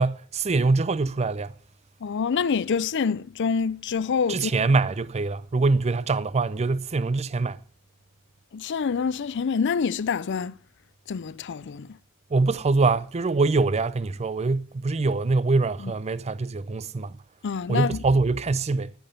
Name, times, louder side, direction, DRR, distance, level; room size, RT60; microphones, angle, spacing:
voice 1, 0.0-1.5 4.3-7.6 12.3-17.1 17.7-18.9, right 3 dB, 30° right, 0.4 m, -24 dB
voice 2, 2.0-4.5 8.5-10.5 11.1-11.9 15.8-15.9 17.4-18.0, left 6 dB, 55° left, 0.4 m, -26 dB
11.0 x 10.0 x 5.7 m
head